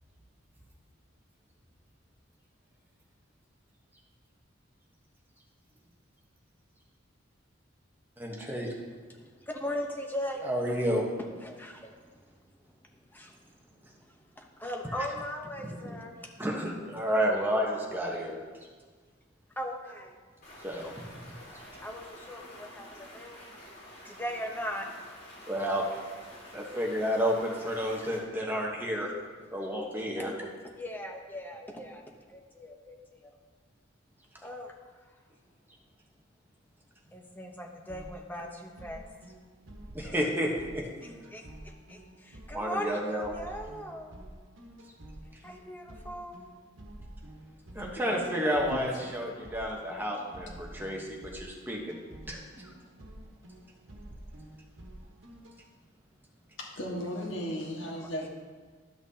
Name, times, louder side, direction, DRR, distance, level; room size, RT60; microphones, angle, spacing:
voice 1, 8.2-8.7 10.4-11.1 15.8-15.9 16.4-18.4 20.6-20.9 25.5-25.8 26.5-29.1 29.5-30.3 39.9-40.8 42.5-43.3 47.7-52.0 52.3-52.4, equal, 10° right, -1 dB, 1.1 m, -30 dB
voice 2, 9.1-10.5 11.4-12.1 12.4-12.6 12.9-16.2 19.6-20.2 21.8-24.9 30.2-30.3 30.6-33.3 34.4-34.7 35.0-35.2 37.1-39.0 40.0-40.2 41.0-44.2 45.4-46.4 58.0-58.3, equal, 10° left, 1 dB, 0.8 m, -39 dB
Stream, 20.4-28.2, left 1 dB, 50° left, 2.6 m, -49 dB
sound 1, 37.9-55.6, right 1 dB, 75° right, 1.3 m, -49 dB
voice 3, 48.5-49.0 56.6-58.3, equal, 65° left, -2 dB, 1.6 m, -36 dB
12.5 x 6.0 x 2.8 m, 1.5 s
head